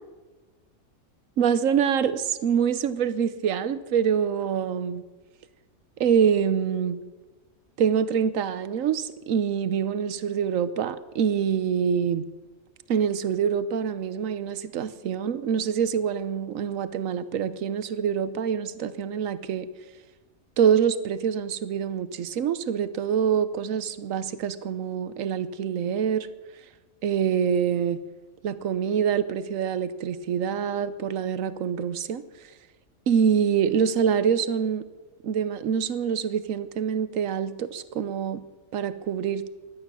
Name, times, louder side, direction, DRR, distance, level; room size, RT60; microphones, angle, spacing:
voice 1, 1.4-5.0 6.0-7.0 7.8-12.3 12.9-19.7 20.6-26.3 27.0-28.0 28.4-32.2 33.1-34.9 35.2-38.4 38.7-39.4, right 7 dB, 70° right, 14 dB, 1.2 m, -25 dB
16.0 x 11.5 x 6.2 m, 1.3 s
omnidirectional pair, 1.4 m